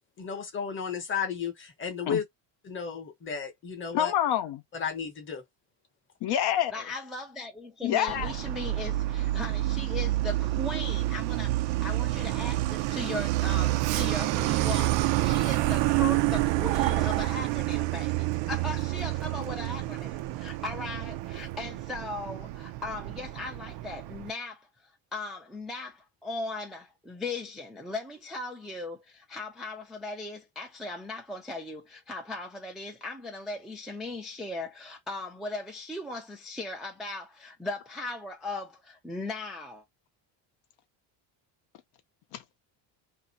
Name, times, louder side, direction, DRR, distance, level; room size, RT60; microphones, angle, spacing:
voice 1, 0.2-2.2 2.6-4.1 4.7-5.4, left 6 dB, 25° left, 0.9 m, -33 dB
voice 2, 3.9-4.6 6.2-6.9 7.8-8.3 42.3-42.4, left 11 dB, 60° left, 0.6 m, -27 dB
voice 3, 6.7-24.7 25.1-39.8, left 2 dB, ahead, 0.3 m, -38 dB
Truck, 8.1-24.3, right 17 dB, 65° right, 0.5 m, -28 dB
2.6 x 2.5 x 4.0 m
cardioid pair, 165°, 46 cm